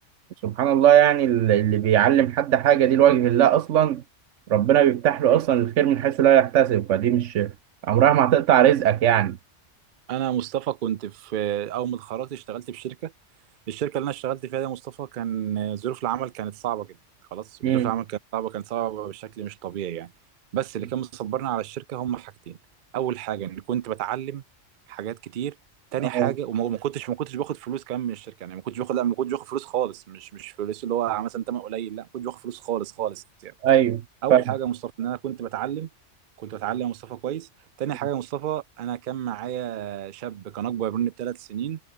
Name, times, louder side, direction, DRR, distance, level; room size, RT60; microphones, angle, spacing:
voice 1, 0.4-4.0 4.5-7.5 7.8-9.4 17.6-17.9 26.1-26.3 33.6-34.0 34.3-34.4, right 11 dB, 80° right, 1.1 m, -19 dB
voice 2, 10.1-13.1 13.7-17.0 17.3-20.1 20.5-22.6 22.9-24.4 24.9-25.5 25.9-33.5 34.2-35.9 36.4-37.5 37.8-41.8, right 11 dB, 55° right, 0.6 m, -30 dB
omnidirectional pair, 1.2 m